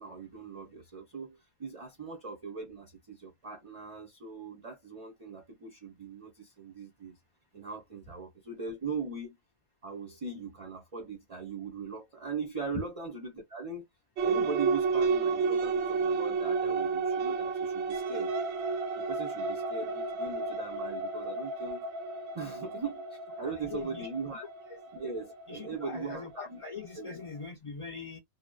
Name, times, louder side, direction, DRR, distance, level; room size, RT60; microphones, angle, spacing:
voice 1, 0.0-7.2 7.5-9.4 9.8-13.8 14.2-18.3 19.0-21.9 22.3-24.5 24.9-26.6 27.0-27.1, right 5 dB, 40° right, 0.5 m, -40 dB
sound 1, 14.2-26.1, right 4 dB, 70° right, 0.8 m, -31 dB
voice 2, 23.4-24.1 25.5-28.2, left 5 dB, 50° left, 0.4 m, -42 dB
2.7 x 2.0 x 2.2 m
omnidirectional pair, 1.2 m